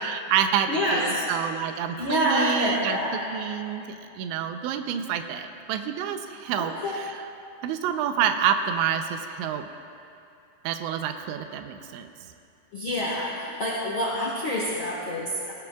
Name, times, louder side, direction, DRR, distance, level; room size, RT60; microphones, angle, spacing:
voice 1, 0.0-3.0 3.3-7.3 7.6-9.7 10.6-12.1, right 8 dB, 85° right, 7 dB, 2.9 m, -28 dB
voice 2, 0.7-1.3 2.0-3.3 6.6-6.9 12.7-15.5, equal, 80° left, -6 dB, 1.1 m, -27 dB
18.5 x 18.0 x 2.4 m, 2.5 s
omnidirectional pair, 5.2 m